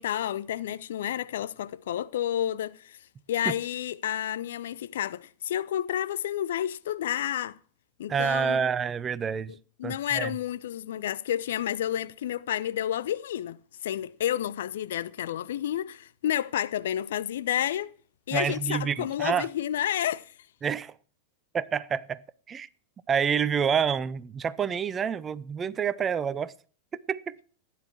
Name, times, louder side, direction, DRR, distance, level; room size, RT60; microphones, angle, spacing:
voice 1, 0.0-3.0 3.3-7.6 8.0-8.6 9.5-17.9 18.3-20.3, left 11 dB, 60° left, 0.6 m, -30 dB
voice 2, 8.1-9.5 9.8-10.3 18.3-19.5 20.6-20.9 21.5-22.2 22.5-22.7 23.1-26.5 26.9-27.4, right 7 dB, 20° right, 0.7 m, -28 dB
16.5 x 10.0 x 4.6 m
figure-of-eight pair, 90°, 0 cm